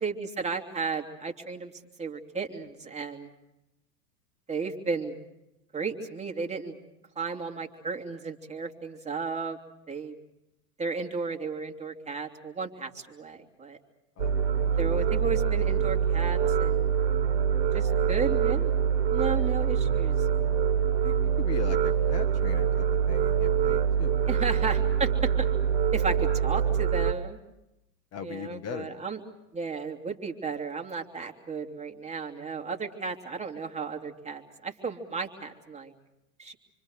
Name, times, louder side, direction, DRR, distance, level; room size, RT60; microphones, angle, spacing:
voice 1, 0.0-1.7 2.0-3.3 4.5-5.2 5.7-6.8 7.2-9.6 9.9-10.1 10.8-13.8 14.8-16.9 17.7-18.7 19.1-20.1 24.2-25.5 25.9-27.4 28.2-29.2 29.5-35.9 36.4-36.6, right 4 dB, 15° right, 2 dB, 3.0 m, -34 dB
sound 1, 14.2-27.1, right 8 dB, 75° right, 1.5 m, -25 dB
voice 2, 21.0-24.3 28.1-29.0, left 8 dB, 30° left, 9 dB, 1.6 m, -39 dB
27.5 x 25.5 x 6.6 m, 0.91 s
hypercardioid pair, 100°, 47 cm